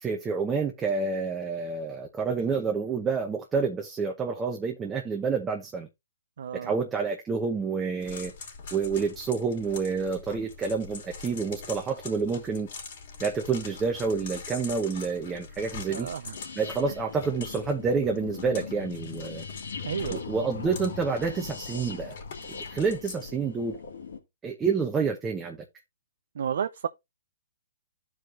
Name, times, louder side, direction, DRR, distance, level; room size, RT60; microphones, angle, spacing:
voice 1, 0.0-5.9 6.5-8.3 8.7-12.7 13.2-16.1 16.6-19.4 20.1-22.1 22.7-23.8 24.4-25.6, right 5 dB, 15° right, 0.8 m, -28 dB
voice 2, 6.4-6.8 15.9-16.4 19.8-20.2 26.4-26.9, right 8 dB, 70° right, 0.5 m, -32 dB
sound 1, 8.0-23.3, left 5 dB, 55° left, 2.9 m, -44 dB
sound 2, 16.3-24.2, left 5 dB, 80° left, 1.9 m, -40 dB
13.0 x 4.8 x 2.5 m
hypercardioid pair, 150°, 0 cm